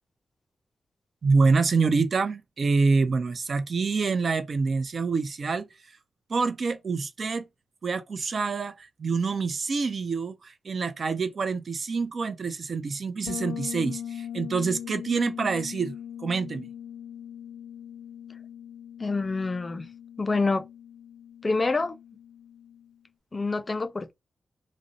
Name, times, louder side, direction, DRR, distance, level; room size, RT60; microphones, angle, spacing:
voice 1, 1.2-5.7 6.3-7.5 7.8-16.7, right 4 dB, 60° right, 0.4 m, -26 dB
Bass guitar, 13.3-22.9, left 9 dB, 80° left, 0.6 m, -40 dB
voice 2, 19.0-19.9 20.2-20.6 21.4-22.0 23.3-24.1, left 3 dB, 35° left, 0.3 m, -27 dB
2.5 x 2.0 x 2.5 m
cardioid pair, 60°, 0 cm